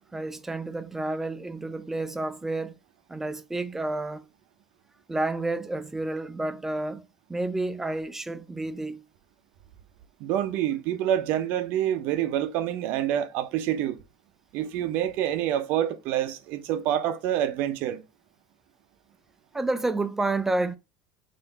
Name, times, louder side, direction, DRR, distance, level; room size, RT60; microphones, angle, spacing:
voice 1, 0.1-2.7 3.1-4.2 5.1-7.0 7.3-9.0 19.5-20.7, right 2 dB, 10° right, 0.5 m, -30 dB
voice 2, 10.2-14.0 14.5-18.0, right 11 dB, 65° right, 0.7 m, -27 dB
3.9 x 2.7 x 4.0 m
supercardioid pair, 105°, 3 cm